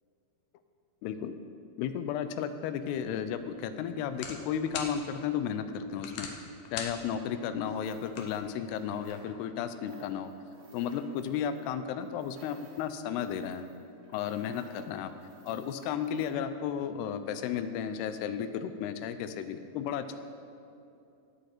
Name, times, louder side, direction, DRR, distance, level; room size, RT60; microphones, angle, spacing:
voice 1, 1.0-1.4 1.8-6.3 6.7-10.3 10.7-13.7 14.1-15.1 15.4-20.2, left 8 dB, 90° left, 10 dB, 2.7 m, -34 dB
sound 1, 2.9-9.0, left 5 dB, 70° left, 1.9 m, -45 dB
sound 2, 7.6-9.6 9.8-16.3, right 2 dB, 85° right, 4.3 m, -59 dB
17.5 x 8.2 x 4.5 m, 2.6 s
omnidirectional pair, 4.6 m